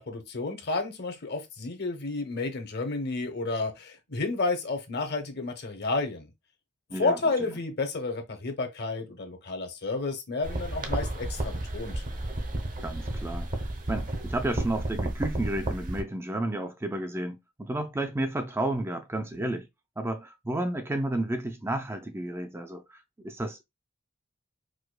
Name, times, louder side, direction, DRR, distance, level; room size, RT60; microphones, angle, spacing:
voice 1, 0.0-6.3 6.9-12.0, left 3 dB, 55° left, 0.9 m, -31 dB
voice 2, 6.9-7.5 12.8-13.5 13.9-19.7 20.0-22.8 23.2-23.6, right 1 dB, 10° right, 0.4 m, -32 dB
sound 1, 10.4-16.0, right 1 dB, 40° right, 0.8 m, -32 dB
4.8 x 2.2 x 2.2 m
head